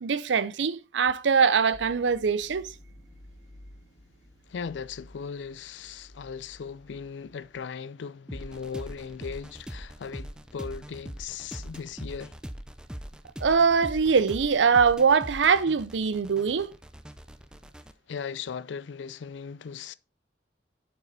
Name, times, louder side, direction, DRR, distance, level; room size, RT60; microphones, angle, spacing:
voice 1, 0.0-2.7 13.4-16.7, right 5 dB, 85° right, 0.6 m, -22 dB
sound 1, 1.7-7.6, left 1 dB, 20° left, 2.8 m, -52 dB
voice 2, 4.5-12.3 18.1-19.9, left 6 dB, 90° left, 0.4 m, -38 dB
sound 2, 8.3-17.9, equal, 5° right, 0.5 m, -42 dB
8.0 x 5.6 x 4.2 m
head